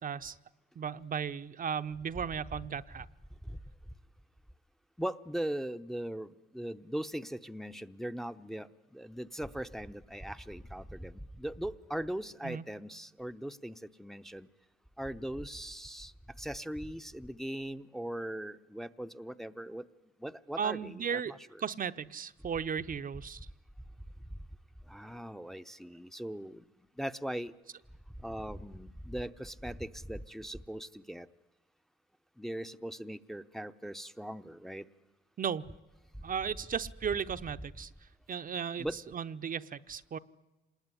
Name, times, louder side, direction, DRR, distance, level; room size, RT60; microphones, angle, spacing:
voice 1, 0.0-0.4 0.8-3.1 12.4-12.6 20.6-21.3 21.6-23.5 35.4-35.7 36.2-37.9 38.3-38.9 39.1-40.2, right 7 dB, 45° right, 11 dB, 0.8 m, -35 dB
voice 2, 5.0-6.3 6.5-8.7 8.9-14.5 15.0-16.1 16.4-19.8 20.2-21.4 24.9-26.6 27.0-27.5 28.2-31.3 32.4-34.8 38.8-38.9, right 1 dB, ahead, 9 dB, 0.8 m, -39 dB
27.0 x 20.0 x 9.8 m, 1.1 s
cardioid pair, 90°, 20 cm